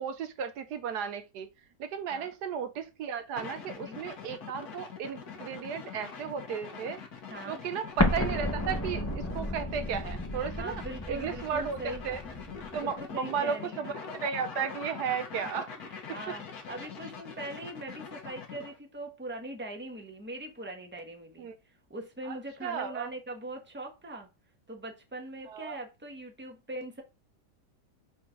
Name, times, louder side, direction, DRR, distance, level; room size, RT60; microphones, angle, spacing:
voice 1, 0.0-1.5 1.8-7.0 7.5-11.8 12.0-12.2 12.7-15.7 21.4-21.6 22.3-22.4 22.6-23.1 25.5-25.8, right 7 dB, 75° right, 1.2 m, -34 dB
sound 1, 3.4-18.8, left 6 dB, 65° left, 1.7 m, -44 dB
voice 2, 7.3-7.6 10.6-12.0 12.8-13.9 15.4-21.5 21.9-24.3 24.7-27.0, right 1 dB, 5° right, 1.2 m, -41 dB
Explosion, 8.0-12.8, left 1 dB, 20° left, 0.5 m, -32 dB
5.0 x 4.2 x 5.8 m
omnidirectional pair, 1.8 m